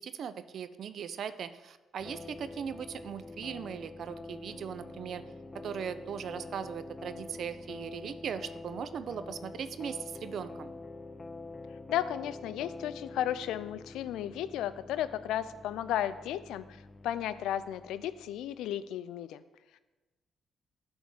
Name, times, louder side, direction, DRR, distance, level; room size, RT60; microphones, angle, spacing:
voice 1, 0.0-5.2 5.6-10.7, right 7 dB, 60° right, 13 dB, 0.3 m, -39 dB
sound 1, 2.0-18.7, left 3 dB, 25° left, 0.4 m, -46 dB
voice 2, 11.9-19.4, left 11 dB, 85° left, 14 dB, 0.3 m, -34 dB
8.2 x 3.5 x 6.4 m, 1.1 s
cardioid pair, 90°, 0 cm